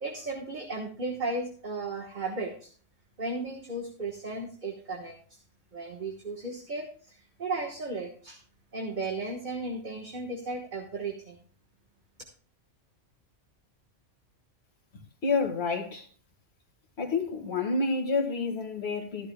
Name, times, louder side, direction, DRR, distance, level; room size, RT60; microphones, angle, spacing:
voice 1, 0.0-2.7 3.2-5.4 5.7-8.4 8.7-11.4, right 2 dB, 40° right, 1.4 m, -35 dB
voice 2, 15.2-16.1 17.0-19.3, left 4 dB, 55° left, 2.0 m, -29 dB
15.5 x 11.0 x 2.2 m
omnidirectional pair, 1.3 m